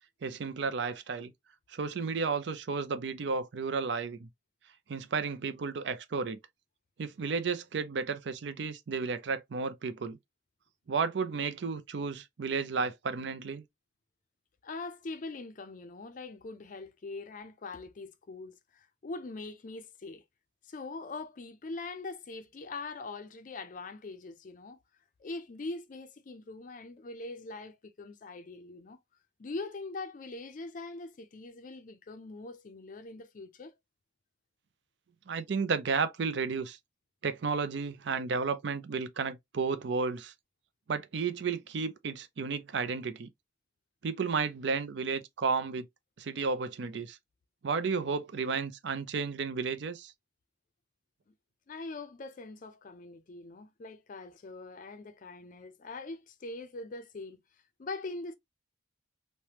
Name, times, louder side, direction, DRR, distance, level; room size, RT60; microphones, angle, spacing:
voice 1, 0.2-1.3 1.7-4.3 4.9-6.4 7.0-10.2 10.9-13.6 35.3-36.8 37.2-40.3 40.9-43.3 44.0-45.9 46.2-47.2 47.6-50.1, right 5 dB, 65° right, 0.4 m, -32 dB
voice 2, 14.6-20.2 20.6-24.8 25.2-29.0 29.4-33.7 51.7-58.3, left 3 dB, 45° left, 0.4 m, -42 dB
3.2 x 2.1 x 2.8 m
head